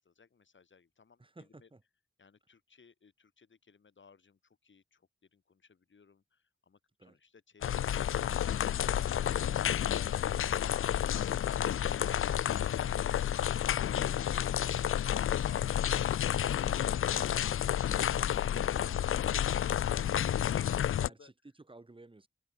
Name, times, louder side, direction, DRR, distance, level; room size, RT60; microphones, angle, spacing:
voice 1, 0.0-1.7 2.2-8.2, left 5 dB, 65° left, 3.9 m, -60 dB
voice 2, 1.2-1.8 7.0-7.2 14.3-15.0 18.4-18.8 21.0-22.3, right 2 dB, 25° right, 2.5 m, -54 dB
sound 1, 7.6-21.1, left 10 dB, 80° left, 0.4 m, -30 dB
open air
wide cardioid pair, 130°, 21 cm